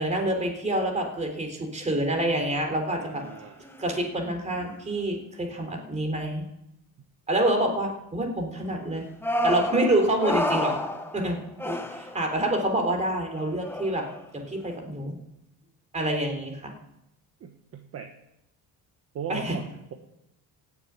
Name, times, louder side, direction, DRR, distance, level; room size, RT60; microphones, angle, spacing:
voice 1, 0.0-3.2 3.8-6.4 7.3-9.1 9.4-10.7 11.1-11.4 11.6-14.0 14.3-15.2 15.9-16.7 19.3-19.6, right 1 dB, 20° right, 3 dB, 3.7 m, -27 dB
sound 1, 3.0-3.4 3.7-4.0 4.6-4.8 9.2-12.5 13.4-14.2, left 1 dB, 5° left, 1.2 m, -30 dB
voice 2, 3.0-3.6 11.2-11.3 17.4-18.1 19.1-19.9, right 8 dB, 40° right, 4 dB, 1.3 m, -38 dB
16.0 x 7.7 x 9.3 m, 0.83 s
cardioid pair, 150°, 38 cm